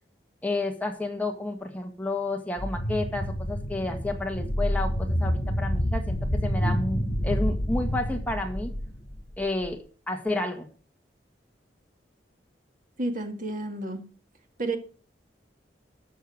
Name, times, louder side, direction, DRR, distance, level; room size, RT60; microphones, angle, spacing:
voice 1, 0.4-8.7 9.4-10.7, left 2 dB, 10° left, 3 dB, 1.7 m, -31 dB
sound 1, 2.6-9.7, equal, 60° left, 5.3 m, -28 dB
voice 2, 13.0-14.0 14.6-14.8, right 2 dB, 50° right, 6 dB, 2.1 m, -30 dB
13.5 x 7.1 x 6.3 m, 0.39 s
head